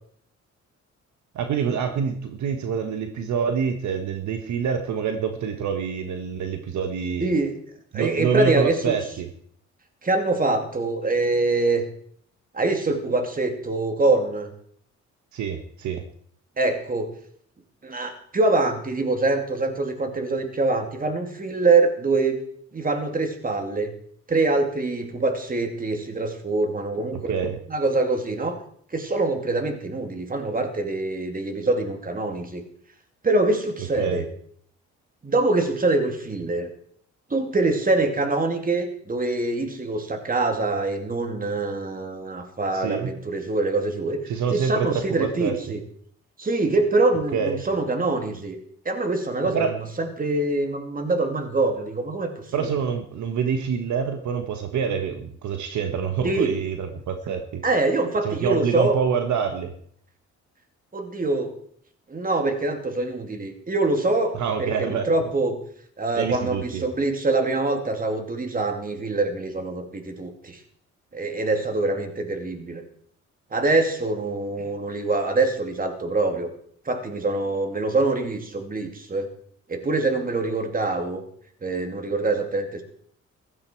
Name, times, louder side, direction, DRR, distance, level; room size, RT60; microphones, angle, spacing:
voice 1, 1.3-7.3 7.9-9.3 15.3-16.0 27.3-27.6 34.0-34.2 42.7-43.1 44.3-45.6 47.3-47.6 49.5-49.7 52.5-57.4 58.2-59.7 64.3-65.1 66.2-66.8, right 6 dB, 70° right, 7 dB, 1.4 m, -26 dB
voice 2, 7.2-7.5 7.9-8.9 10.0-11.9 12.5-14.5 16.6-17.1 17.8-22.4 22.7-23.9 24.3-27.4 27.7-28.6 28.9-32.6 33.2-34.2 35.2-36.7 37.3-44.2 44.5-45.8 46.4-48.6 48.8-52.7 56.2-56.6 57.6-59.0 60.9-61.5 62.1-65.6 66.0-70.6 71.1-72.8 73.5-76.5 76.8-79.3 79.7-81.2 81.6-82.8, right 2 dB, 30° right, 5 dB, 2.8 m, -24 dB
15.5 x 12.5 x 4.6 m, 0.62 s
cardioid pair, 90°, 30 cm